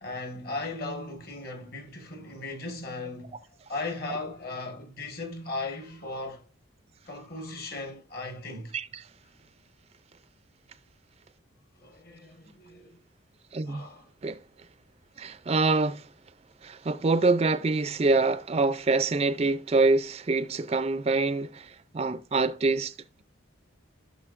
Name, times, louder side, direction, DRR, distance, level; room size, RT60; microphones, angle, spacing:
voice 1, 0.0-3.4 3.7-6.4 7.1-8.7 11.8-13.0 13.6-14.1, left 2 dB, 45° left, 1.5 m, -37 dB
voice 2, 8.7-9.0 13.5-13.9 14.2-14.4 15.2-16.0 16.6-22.9, right 3 dB, 30° right, 0.4 m, -25 dB
15.0 x 6.2 x 2.5 m
head